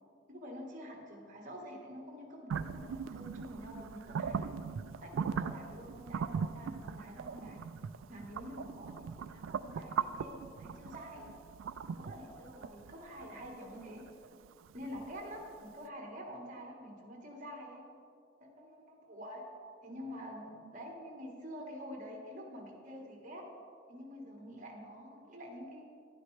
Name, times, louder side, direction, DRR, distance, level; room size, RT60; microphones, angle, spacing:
voice 1, 0.3-4.5 5.0-7.6 8.1-11.3 11.9-14.0 14.7-17.8 18.4-19.4 19.8-23.4 23.9-25.8, equal, 40° right, 0 dB, 1.5 m, -47 dB
sound 1, 2.5-15.4, right 6 dB, 70° right, 0.3 m, -40 dB
11.0 x 9.2 x 3.3 m, 2.4 s
head